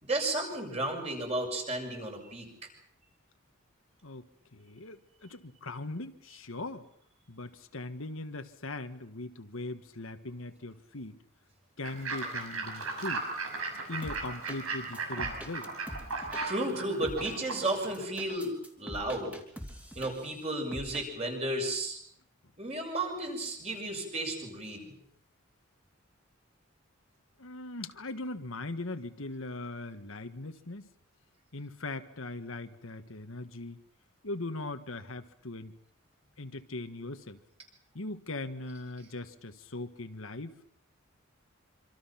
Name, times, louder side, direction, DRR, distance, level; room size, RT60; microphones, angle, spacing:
voice 1, 0.0-2.5 16.4-19.3 19.9-22.0 22.6-24.8, right 1 dB, 30° right, 2 dB, 6.7 m, -33 dB
voice 2, 4.0-6.9 7.3-11.2 11.8-13.3 13.9-15.7 27.4-30.9 31.5-33.8 34.2-35.8 36.4-37.4 37.9-40.6, left 2 dB, 70° left, 8 dB, 1.5 m, -40 dB
Fowl / Bird, 11.8-18.0, right 3 dB, 90° right, 6.2 m, -37 dB
sound 1, 14.0-14.6 14.9-16.4 17.0-17.4 17.8-20.4 20.7-21.0, equal, 5° right, 3.4 m, -43 dB
26.5 x 26.0 x 5.9 m, 0.65 s
head